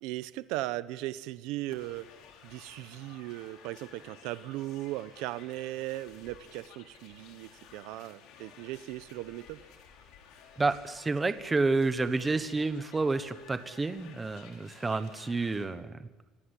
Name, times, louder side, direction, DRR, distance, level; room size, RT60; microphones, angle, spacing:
voice 1, 0.0-2.1 2.4-9.6, right 16 dB, 75° right, 15 dB, 0.8 m, -38 dB
sound 1, 1.7-15.7, left 7 dB, 65° left, 4.4 m, -54 dB
voice 2, 10.6-16.1, right 3 dB, 15° right, 10 dB, 1.1 m, -29 dB
25.0 x 18.0 x 9.9 m, 1.2 s
cardioid pair, 165°, 0 cm